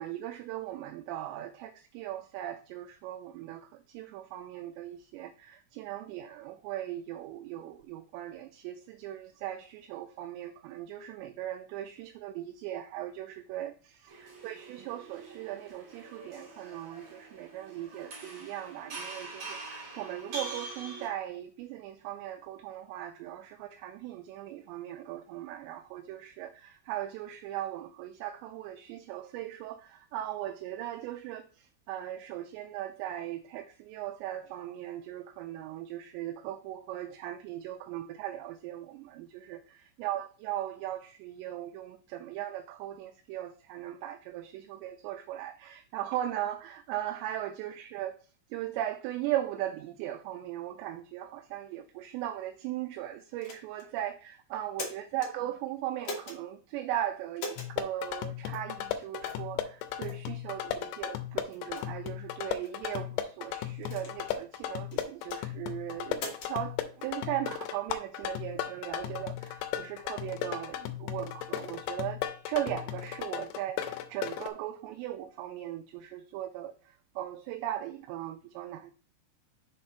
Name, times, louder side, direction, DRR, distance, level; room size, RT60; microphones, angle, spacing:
voice 1, 0.0-78.9, right 12 dB, 85° right, 2.6 m, -38 dB
sound 1, 14.1-21.1, right 3 dB, 45° right, 2.7 m, -44 dB
sound 2, 53.4-53.9 54.5-55.3 56.0-56.4 57.4-57.7 58.5-58.7 59.3-59.5 60.0-60.2 60.8-60.9 61.5-61.9 62.6-63.0 63.8-64.4 64.9-65.4 66.1-66.5, left 3 dB, 60° left, 1.9 m, -41 dB
sound 3, 57.6-74.5, left 12 dB, 85° left, 2.8 m, -36 dB
6.5 x 4.2 x 4.4 m
omnidirectional pair, 5.3 m